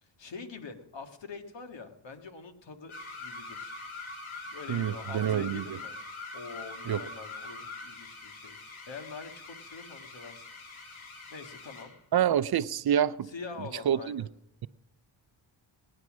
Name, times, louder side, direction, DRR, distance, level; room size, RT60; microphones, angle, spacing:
voice 1, 0.0-3.7 4.4-6.0 6.3-11.0 11.3-11.9 13.3-14.3, left 4 dB, 65° left, 1.9 m, -45 dB
sound 1, 2.9-12.0, left 3 dB, 85° left, 3.2 m, -43 dB
voice 2, 4.7-5.8 6.9-7.0 12.1-13.3 13.9-14.3, right 9 dB, 50° right, 0.6 m, -27 dB
19.0 x 9.7 x 6.2 m
cardioid pair, 70°, 47 cm